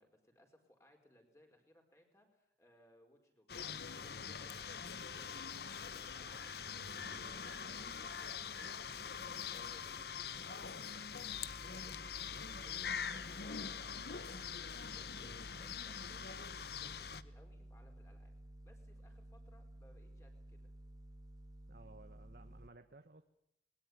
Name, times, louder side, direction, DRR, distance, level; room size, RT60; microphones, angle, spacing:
voice 1, 0.0-3.7 4.0-6.6 7.1-8.9 9.5-18.4 18.6-20.7, left 1 dB, 15° left, 4 dB, 4.8 m, -66 dB
sound 1, 3.5-17.2, left 7 dB, 60° left, 0.9 m, -44 dB
voice 2, 6.8-7.3 7.6-7.9 21.7-23.2, right 2 dB, 55° right, 8 dB, 1.2 m, -58 dB
sound 2, 11.3-22.7, right 1 dB, 20° right, 2.2 m, -54 dB
22.0 x 21.0 x 9.6 m, 0.79 s
head